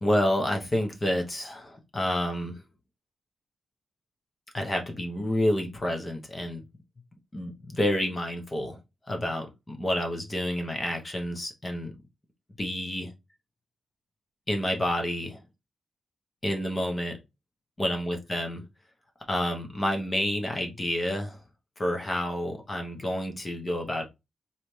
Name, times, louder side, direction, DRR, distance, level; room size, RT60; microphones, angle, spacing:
voice 1, 0.0-2.6 4.5-6.6 7.3-8.8 9.1-11.9 12.6-13.1 14.5-15.4 16.4-17.2 17.8-18.6 19.3-21.4 21.8-24.0, left 1 dB, 20° left, 1.0 m, -29 dB
4.2 x 3.2 x 3.2 m
wide cardioid pair, 170°, 0 cm